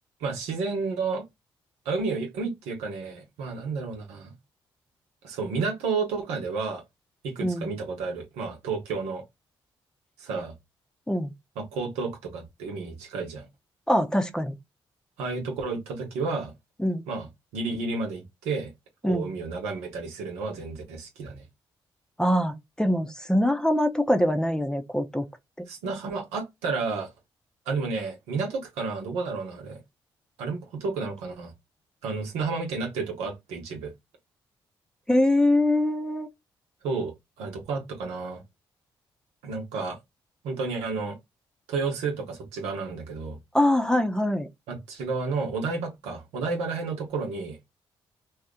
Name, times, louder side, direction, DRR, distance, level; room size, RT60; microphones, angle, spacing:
voice 1, 0.2-1.2 1.8-4.3 5.2-6.8 7.2-9.2 10.2-10.5 11.6-13.5 15.2-16.5 17.1-17.3 17.5-18.7 19.0-21.4 25.7-27.1 27.7-29.8 30.4-31.5 32.0-33.9 36.8-38.4 39.4-40.0 40.4-41.2 41.7-43.4 44.7-47.7, right 4 dB, 85° right, 0.9 m, -31 dB
voice 2, 7.4-7.7 11.1-11.3 13.9-14.6 16.8-17.0 19.0-19.3 22.2-25.2 25.6-25.7 35.1-36.3 43.5-44.5, left 1 dB, 5° left, 0.7 m, -23 dB
2.8 x 2.4 x 3.5 m
hypercardioid pair, 45°, 11 cm